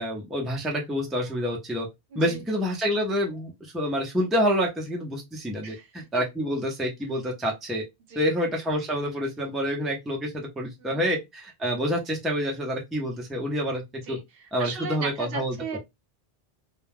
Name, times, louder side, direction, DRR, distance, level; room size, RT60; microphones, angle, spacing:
voice 1, 0.0-1.9 2.1-7.8 8.1-13.8 14.1-14.2 14.5-15.8, equal, ahead, 0.5 m, -28 dB
voice 2, 2.1-2.4 5.6-5.9 8.1-8.3 10.8-11.1 14.1-15.8, right 4 dB, 65° right, 0.8 m, -37 dB
2.3 x 2.2 x 3.3 m
omnidirectional pair, 1.0 m